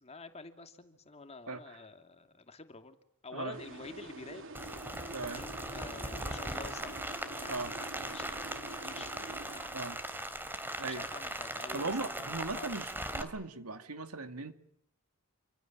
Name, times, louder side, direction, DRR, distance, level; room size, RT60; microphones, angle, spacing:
voice 1, 0.0-3.0 3.2-4.5 5.2-10.4 10.8-12.3 12.5-12.8, left 3 dB, 30° left, 7 dB, 2.7 m, -49 dB
sound 1, 3.5-10.2, right 2 dB, 60° right, 3.3 m, -47 dB
Rain, 4.5-13.2, right 1 dB, 10° right, 3.3 m, -39 dB
voice 2, 5.1-5.4 7.5-7.7 9.7-10.0 10.8-11.0 11.7-14.5, right 3 dB, 85° right, 9 dB, 2.6 m, -38 dB
29.0 x 26.0 x 7.5 m, 0.71 s
head